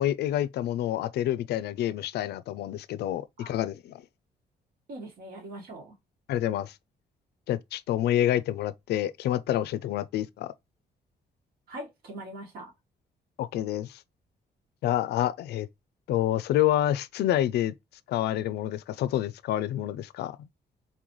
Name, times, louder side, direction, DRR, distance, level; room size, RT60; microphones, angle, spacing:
voice 1, 0.0-3.9 6.3-6.7 7.5-10.5 13.4-14.0 14.8-15.7 16.1-17.7 18.1-20.5, left 12 dB, 80° left, 0.4 m, -28 dB
voice 2, 4.9-5.9 11.7-12.7, right 1 dB, 65° right, 1.5 m, -41 dB
4.0 x 3.9 x 3.1 m
cardioid pair, 175°, 17 cm